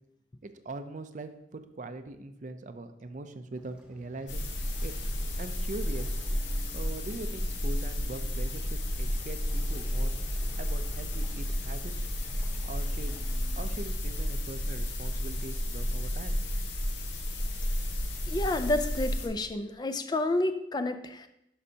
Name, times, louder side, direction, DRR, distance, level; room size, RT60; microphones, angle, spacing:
voice 1, 0.4-4.5 4.8-4.9 5.4-6.1 6.7-10.1 10.6-12.1 12.6-13.2 13.6-16.4, right 2 dB, 45° right, 9 dB, 0.5 m, -42 dB
Waves surf, 3.6-13.9, equal, 5° right, 1.0 m, -53 dB
sound 1, 4.3-19.3, equal, 80° left, 1.1 m, -32 dB
voice 2, 18.3-21.3, left 2 dB, 25° left, 9 dB, 0.4 m, -30 dB
11.5 x 5.4 x 2.8 m, 0.82 s
head